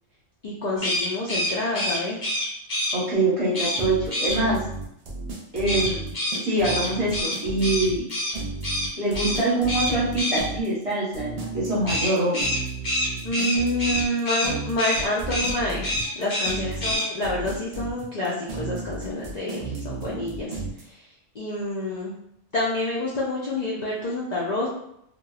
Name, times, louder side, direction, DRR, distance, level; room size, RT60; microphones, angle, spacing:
voice 1, 0.4-2.2 13.2-15.9 16.2-20.5 20.8-21.1 21.3-22.1 22.5-24.7, left 1 dB, 75° left, -5 dB, 0.3 m, -28 dB
sound 1, 0.8-2.9 3.5-3.8 4.1-4.4 5.7-8.3 8.6-8.9 9.1-9.4 9.7-10.4 11.9-14.5 14.8-15.0 15.3-15.5 15.8-16.5 16.8-17.0, left 1 dB, 40° left, 0.9 m, -26 dB
voice 2, 2.9-4.6 5.5-6.1 6.4-8.1 9.0-12.4 16.5-17.0, right 2 dB, 30° right, -8 dB, 0.9 m, -24 dB
sound 2, 3.8-20.8, right 3 dB, 90° right, 0.3 m, -34 dB
2.8 x 2.2 x 2.3 m, 0.76 s
omnidirectional pair, 1.3 m